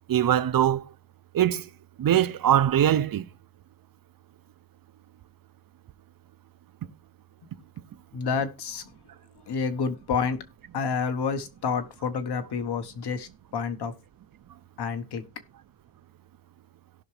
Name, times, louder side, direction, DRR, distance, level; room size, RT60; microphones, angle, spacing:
voice 1, 0.1-0.8 1.3-1.7 2.0-3.2, right 11 dB, 60° right, 0.7 m, -22 dB
voice 2, 8.1-8.8 9.5-10.4 10.7-13.9 14.8-15.2, left 5 dB, 90° left, 1.3 m, -29 dB
17.5 x 5.9 x 3.3 m
wide cardioid pair, 170°, 39 cm